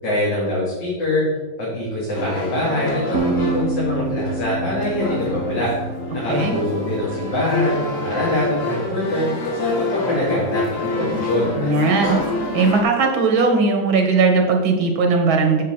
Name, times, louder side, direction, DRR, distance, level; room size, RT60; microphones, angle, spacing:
voice 1, 0.0-1.2 1.6-5.7 6.1-9.3 9.6-11.5, left 1 dB, 65° left, -8 dB, 3.1 m, -23 dB
sound 1, 2.1-12.8, left 2 dB, 45° left, 1.4 m, -27 dB
sound 2, 3.1-7.8, right 3 dB, 55° right, 1.2 m, -28 dB
voice 2, 11.6-12.2 12.5-15.6, right 4 dB, 85° right, 2 dB, 2.2 m, -18 dB
7.5 x 7.3 x 4.4 m, 1.2 s
omnidirectional pair, 2.1 m